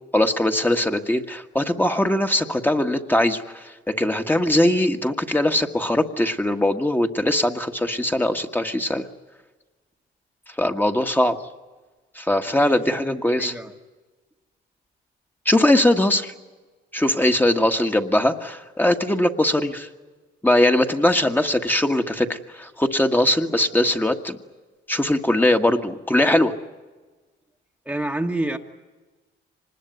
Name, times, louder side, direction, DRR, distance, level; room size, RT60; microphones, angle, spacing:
voice 1, 0.1-3.4 3.9-9.0 10.6-11.4 12.2-13.5 15.4-16.3 16.9-19.9 20.4-24.4 24.9-26.5, left 1 dB, 10° left, 5 dB, 1.6 m, -21 dB
voice 2, 12.6-13.7 27.8-28.6, right 1 dB, 5° right, 3 dB, 1.4 m, -29 dB
25.0 x 20.5 x 9.4 m, 1.3 s
cardioid pair, 90°, 20 cm